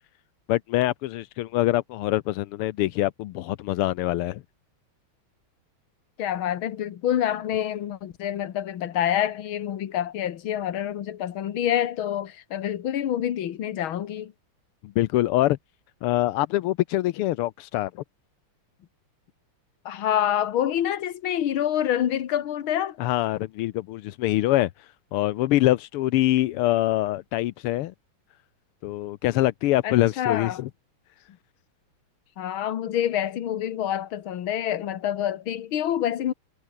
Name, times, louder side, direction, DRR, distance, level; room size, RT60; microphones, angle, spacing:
voice 1, 0.5-4.4 14.8-15.6 16.0-18.0 23.0-24.7 25.1-27.9 28.8-30.7, left 15 dB, 85° left, 1.7 m, -24 dB
voice 2, 6.2-14.3 19.9-23.0 29.8-30.6 32.4-36.3, left 10 dB, 70° left, 2.1 m, -27 dB
omnidirectional pair, 2.4 m